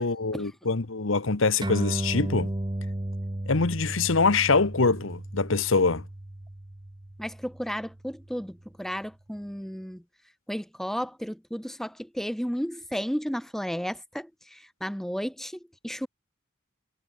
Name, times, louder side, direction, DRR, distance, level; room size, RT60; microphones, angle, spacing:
voice 1, 0.0-2.5 3.5-6.0, left 4 dB, 75° left, 1.1 m, -24 dB
sound 1, 1.6-8.4, right 1 dB, 20° right, 0.7 m, -34 dB
voice 2, 7.2-10.0 10.5-16.1, equal, ahead, 1.3 m, -33 dB
head